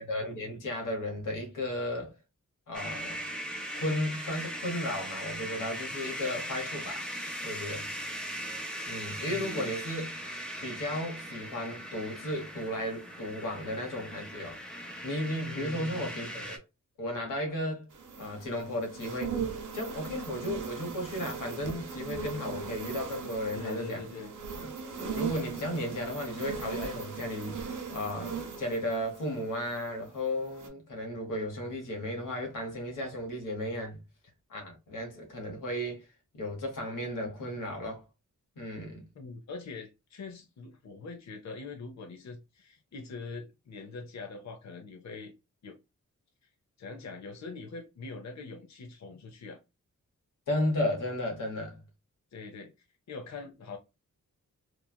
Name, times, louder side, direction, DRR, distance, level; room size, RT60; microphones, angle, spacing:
voice 1, 0.0-2.1 2.7-3.3 3.7-7.1 7.4-7.9 8.8-10.1 10.6-14.6 15.0-16.6 17.0-17.9 18.2-19.4 19.7-24.0 24.5-24.7 25.1-34.0 34.5-36.0 36.3-38.0 38.6-39.0 50.5-51.8, left 1 dB, 90° left, 1.2 m, -34 dB
sound 1, 2.7-16.6, equal, 5° left, 0.8 m, -39 dB
voice 2, 9.3-9.7 15.4-16.1 23.5-24.3 39.2-45.3 45.6-45.8 46.8-49.6 52.3-52.7 53.1-53.8, left 4 dB, 60° left, 0.7 m, -43 dB
sound 2, 17.9-30.1 30.5-30.7, right 6 dB, 80° right, 0.8 m, -39 dB
3.1 x 2.3 x 2.2 m
cardioid pair, 60°, 31 cm